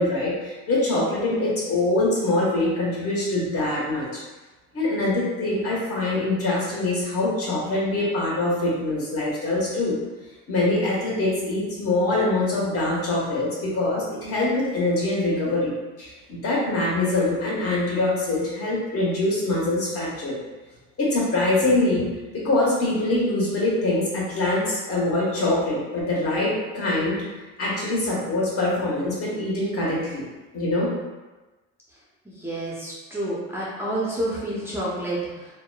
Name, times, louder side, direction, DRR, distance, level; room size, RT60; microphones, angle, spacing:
voice 1, 0.0-4.2 4.7-10.0 10.5-15.7 16.0-20.4 21.0-22.1 22.3-27.2 27.6-30.2 30.5-30.9, left 2 dB, 40° left, -5 dB, 1.1 m, -24 dB
voice 2, 32.3-35.5, right 1 dB, 5° right, -7 dB, 0.6 m, -29 dB
2.8 x 2.1 x 2.2 m, 1.2 s
supercardioid pair, 85°, 38 cm